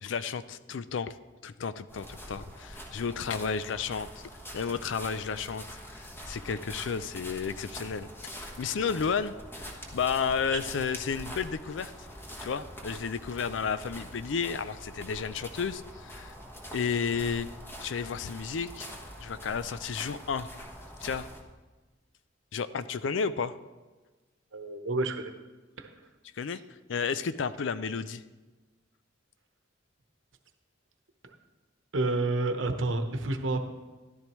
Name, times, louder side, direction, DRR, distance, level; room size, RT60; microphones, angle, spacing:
voice 1, 0.0-1.2 1.4-4.1 4.5-5.6 5.9-9.3 9.6-11.9 12.4-16.4 16.7-17.5 17.8-18.9 19.2-20.5 21.0-21.3 22.5-23.5 26.4-26.6 26.9-28.2, left 6 dB, 70° left, 14 dB, 0.4 m, -32 dB
sound 1, 1.9-21.4, equal, 10° left, 1.1 m, -44 dB
voice 2, 24.5-25.3 25.8-25.9 31.9-33.6, right 2 dB, 80° right, 6 dB, 1.0 m, -29 dB
13.5 x 11.5 x 3.1 m, 1.2 s
head